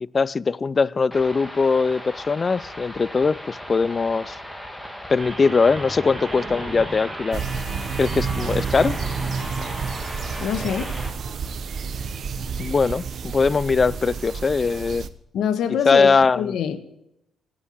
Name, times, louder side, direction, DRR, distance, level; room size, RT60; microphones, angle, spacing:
voice 1, 0.0-4.4 5.1-7.4 8.0-9.0 12.6-15.1 15.9-16.6, left 4 dB, 35° left, 0.4 m, -21 dB
sound 1, 1.1-11.1, equal, 5° left, 2.6 m, -38 dB
sound 2, 5.2-11.1, right 2 dB, 25° right, 4.9 m, -36 dB
sound 3, 7.3-15.1, right 5 dB, 60° right, 1.1 m, -30 dB
voice 2, 10.4-10.9 15.3-16.1 16.3-16.8, left 8 dB, 80° left, 1.6 m, -24 dB
16.5 x 8.8 x 7.5 m
cardioid pair, 90°, 0 cm